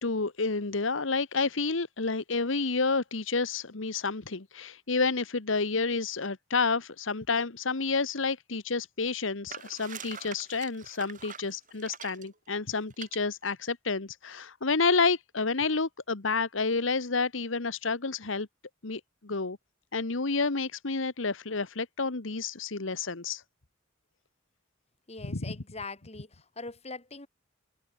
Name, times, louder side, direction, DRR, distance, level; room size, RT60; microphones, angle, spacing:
voice 1, 0.0-18.5 18.8-19.6 19.9-23.4 25.2-25.4, left 4 dB, 75° left, 1.4 m, -30 dB
sound 1, 9.5-12.3 12.9-13.2, right 7 dB, 40° right, 4.0 m, -43 dB
voice 2, 25.1-27.3, left 3 dB, 30° left, 3.6 m, -42 dB
head